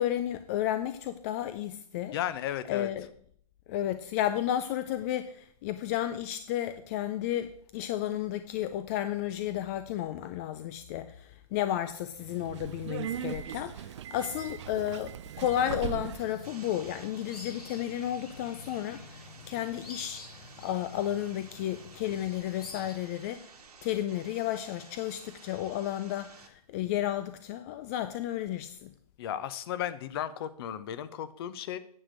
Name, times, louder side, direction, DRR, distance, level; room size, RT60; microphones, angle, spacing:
voice 1, 0.0-2.2 2.7-3.1 3.7-23.5 23.8-28.9, left 12 dB, 25° left, 0.4 m, -32 dB
voice 2, 2.1-2.9 29.2-31.8, left 11 dB, 40° left, 0.8 m, -34 dB
Subway metro underground, 12.2-16.4, right 10 dB, 50° right, 0.5 m, -38 dB
sound 1, 16.1-22.9, left 3 dB, 85° left, 2.9 m, -49 dB
sound 2, 16.4-26.5, right 5 dB, 75° right, 1.8 m, -53 dB
9.8 x 5.1 x 7.7 m
hypercardioid pair, 140°, 20 cm